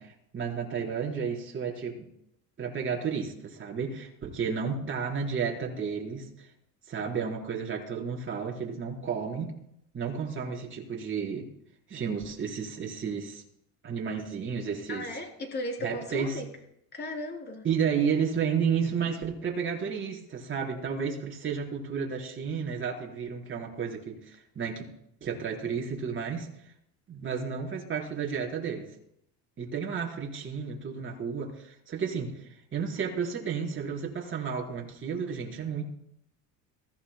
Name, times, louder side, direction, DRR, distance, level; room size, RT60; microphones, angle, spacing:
voice 1, 0.0-2.1 2.6-6.5 6.9-9.5 9.9-11.5 11.9-13.4 13.8-15.0 15.8-16.4 17.6-24.9 25.2-26.5 27.1-28.8 29.6-32.3 32.7-35.8, right 6 dB, 35° right, -1 dB, 4.6 m, -32 dB
voice 2, 14.9-16.5 16.9-17.7, left 1 dB, 30° left, 2 dB, 3.7 m, -36 dB
23.0 x 15.5 x 2.3 m, 0.74 s
cardioid pair, 130°, 35 cm